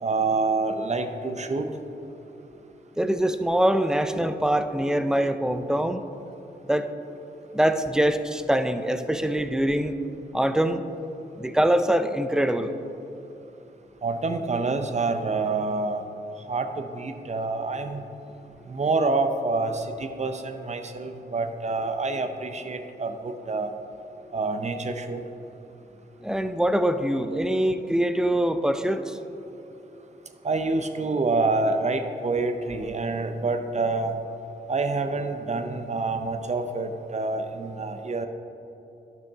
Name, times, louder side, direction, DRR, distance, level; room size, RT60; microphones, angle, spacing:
voice 1, 0.0-1.7 14.0-16.1 16.5-18.1 18.7-23.7 24.3-25.2 30.4-34.1 34.7-38.3, right 3 dB, 40° right, 7 dB, 0.7 m, -27 dB
voice 2, 3.0-6.0 6.7-6.9 7.5-9.9 10.3-10.8 11.4-12.7 26.2-29.2, right 1 dB, 5° right, 9 dB, 0.4 m, -23 dB
11.5 x 6.0 x 3.6 m, 3.0 s
cardioid pair, 75°, 18 cm